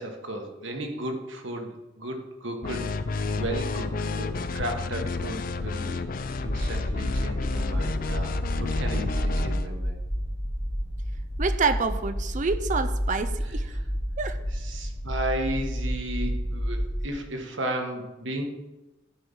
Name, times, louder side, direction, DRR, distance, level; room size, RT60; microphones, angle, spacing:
voice 1, 0.0-2.8 3.1-6.1 6.4-10.0 14.5-18.5, right 1 dB, 70° right, 3 dB, 1.5 m, -34 dB
sound 1, 2.6-9.7, left 3 dB, 45° left, 0.5 m, -31 dB
sound 2, 6.4-17.1, equal, 5° left, 0.6 m, -30 dB
voice 2, 11.4-13.7 14.2-14.4, right 4 dB, 40° right, 10 dB, 0.5 m, -27 dB
12.5 x 4.8 x 5.5 m, 1.0 s
head